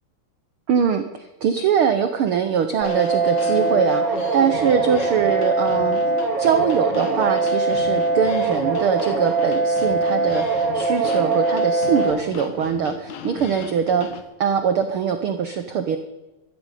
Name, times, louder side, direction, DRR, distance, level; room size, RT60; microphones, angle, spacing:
voice 1, 0.7-6.0 6.4-14.1 14.4-16.0, right 7 dB, 85° right, 8 dB, 1.2 m, -22 dB
sound 1, 2.7-14.2, left 7 dB, 65° left, 2.5 m, -35 dB
sound 2, 2.8-12.1, right 3 dB, 35° right, 3.4 m, -22 dB
13.5 x 11.5 x 9.2 m, 1.1 s
omnidirectional pair, 3.7 m